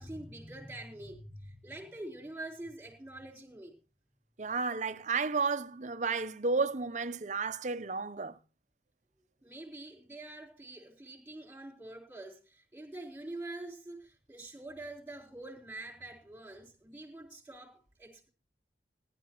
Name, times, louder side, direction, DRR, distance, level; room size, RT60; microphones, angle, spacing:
voice 1, 0.0-3.8 9.4-18.3, right 2 dB, 10° right, 3.9 m, -45 dB
voice 2, 4.4-8.4, right 4 dB, 40° right, 0.7 m, -32 dB
20.0 x 11.5 x 3.0 m
head